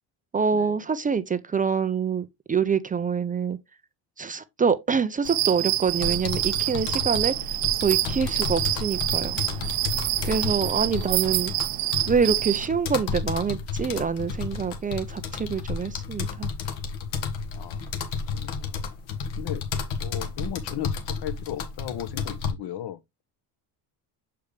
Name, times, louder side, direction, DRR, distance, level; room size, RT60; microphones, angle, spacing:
voice 1, 0.3-3.6 4.2-7.3 7.8-9.4 10.2-11.5 12.1-16.5, right 6 dB, 20° right, 0.4 m, -26 dB
sound 1, 5.3-12.7, right 17 dB, 60° right, 0.6 m, -27 dB
sound 2, 6.0-22.5, left 5 dB, 65° left, 1.7 m, -32 dB
voice 2, 17.5-17.9 18.3-18.8 19.4-19.6 20.0-23.0, left 11 dB, 50° left, 1.0 m, -36 dB
6.9 x 5.0 x 3.3 m
cardioid pair, 110°, 49 cm